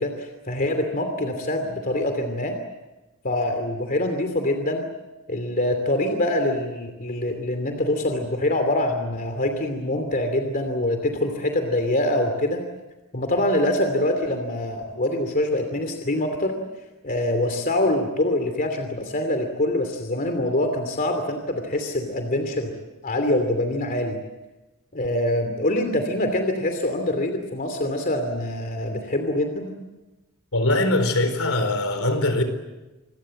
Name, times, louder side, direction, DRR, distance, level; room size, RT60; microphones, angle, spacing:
voice 1, 0.0-2.5 3.2-4.9 5.3-12.6 13.1-16.6 17.0-22.7 23.0-24.2 24.9-29.7, left 1 dB, 40° left, 2.8 m, -24 dB
voice 2, 30.5-32.4, left 1 dB, 65° left, 4.3 m, -22 dB
27.0 x 22.5 x 7.7 m
head